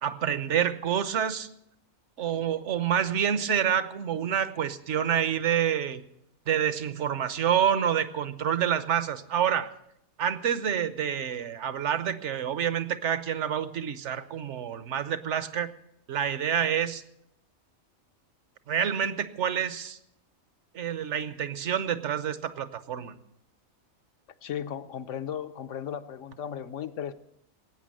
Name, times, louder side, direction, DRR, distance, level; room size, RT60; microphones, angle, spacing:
voice 1, 0.0-1.5 2.2-6.0 6.5-9.7 10.2-15.7 16.1-17.0 18.7-20.0 20.7-23.1, right 9 dB, 60° right, 12 dB, 1.2 m, -28 dB
voice 2, 24.4-27.1, left 9 dB, 70° left, 11 dB, 1.1 m, -35 dB
19.0 x 9.0 x 7.6 m, 0.77 s
omnidirectional pair, 1.4 m